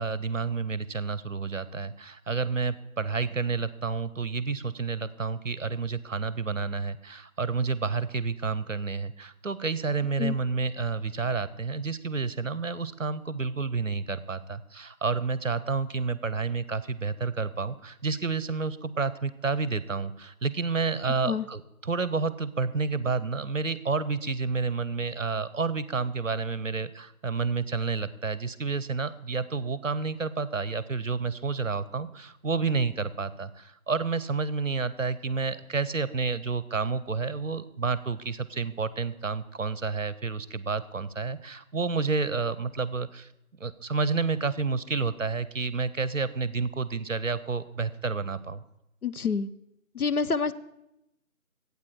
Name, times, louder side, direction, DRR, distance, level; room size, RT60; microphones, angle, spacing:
voice 1, 0.0-43.3 43.6-48.6, right 4 dB, 60° right, 17 dB, 0.6 m, -30 dB
voice 2, 49.0-49.5 49.9-50.5, left 5 dB, 85° left, 13 dB, 0.8 m, -27 dB
12.5 x 8.4 x 4.7 m, 0.86 s
figure-of-eight pair, 170°, 43 cm